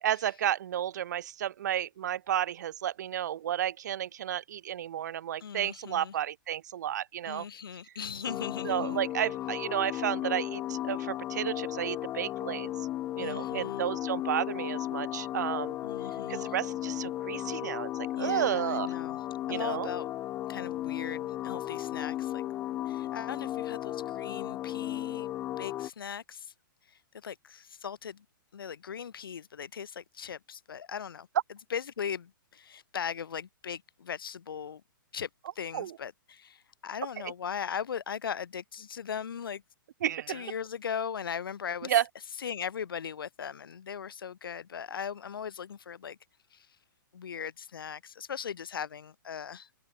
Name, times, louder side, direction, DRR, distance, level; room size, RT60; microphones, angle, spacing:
voice 1, 0.0-7.4 8.6-12.7 13.2-15.7 16.3-18.9 19.5-19.9 35.7-35.9 37.2-37.3 40.0-40.5 41.8-42.0, right 11 dB, 55° right, 3.3 m, -32 dB
voice 2, 5.4-6.1 7.2-9.0 13.2-13.9 15.8-16.5 18.1-19.2 19.5-20.2 20.5-22.5 22.8-25.3 25.6-26.5 26.9-28.2 28.5-31.3 31.7-34.8 35.1-35.3 35.5-39.6 40.3-41.9 42.4-46.2 46.5-46.8 47.1-49.8, left 7 dB, 85° left, 3.1 m, -39 dB
sound 1, 8.3-25.9, left 13 dB, 15° left, 1.9 m, -35 dB
hypercardioid pair, 165°, 11 cm